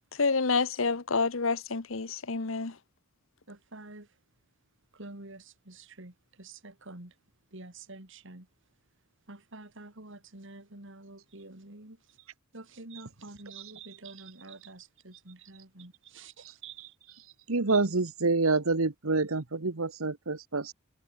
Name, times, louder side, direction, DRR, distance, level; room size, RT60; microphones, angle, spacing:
voice 1, 0.1-2.8, left 4 dB, 65° left, 1.1 m, -28 dB
voice 2, 3.5-4.1 4.9-7.1 7.5-8.5 9.3-12.0 12.5-16.9, right 2 dB, 60° right, 3.2 m, -48 dB
voice 3, 17.5-20.7, right 3 dB, 80° right, 1.3 m, -27 dB
head